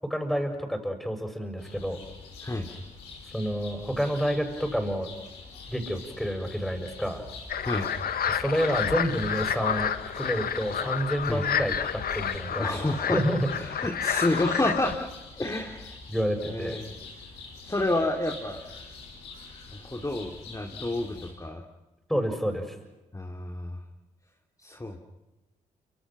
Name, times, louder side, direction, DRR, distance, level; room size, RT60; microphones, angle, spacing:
voice 1, 0.0-2.0 3.3-5.1 5.7-7.2 8.3-9.9 10.2-12.6 13.1-13.4 16.1-16.8 22.1-22.7, equal, ahead, 5 dB, 6.9 m, -29 dB
sound 1, 1.6-21.3, left 4 dB, 85° left, 5.9 m, -45 dB
sound 2, 7.5-15.0, left 8 dB, 60° left, 1.1 m, -30 dB
voice 2, 12.5-13.2 13.5-15.1 15.3-15.9 16.4-16.9 17.6-18.6 19.7-21.6 23.1-23.8 24.6-25.0, left 1 dB, 20° left, 1 dB, 2.9 m, -29 dB
29.0 x 26.0 x 6.2 m, 1.1 s
hypercardioid pair, 40°, 18 cm